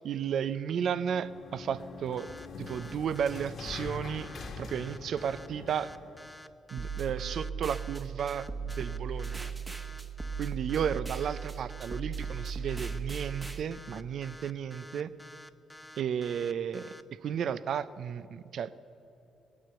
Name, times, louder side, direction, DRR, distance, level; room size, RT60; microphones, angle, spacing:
voice 1, 0.0-2.3 2.6-4.3 4.6-5.9 6.7-9.5 10.4-15.1 16.0-16.9 17.2-18.8, right 8 dB, 65° right, 16 dB, 0.5 m, -33 dB
sound 1, 0.8-6.3, left 3 dB, 55° left, 1.6 m, -44 dB
sound 2, 2.2-17.0, left 1 dB, 5° left, 0.5 m, -50 dB
sound 3, 6.8-13.6, right 6 dB, 20° right, 1.2 m, -37 dB
19.0 x 9.5 x 6.9 m, 3.0 s
cardioid pair, 90°, 0 cm